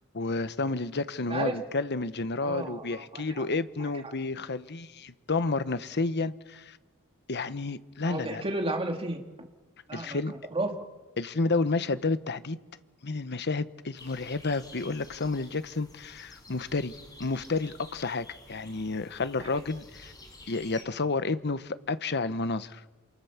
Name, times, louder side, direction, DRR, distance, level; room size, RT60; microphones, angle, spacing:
voice 1, 0.1-6.8 7.3-8.4 9.9-10.3 11.2-12.6 13.0-20.1 20.5-22.8, left 3 dB, 50° left, 13 dB, 1.1 m, -31 dB
voice 2, 2.4-3.4 3.8-4.1 8.0-9.5 9.9-10.7 19.4-19.5, right 2 dB, 25° right, 3 dB, 2.4 m, -33 dB
sound 1, 14.0-20.8, left 2 dB, 20° left, 5.4 m, -51 dB
28.0 x 27.0 x 7.3 m, 1.3 s
head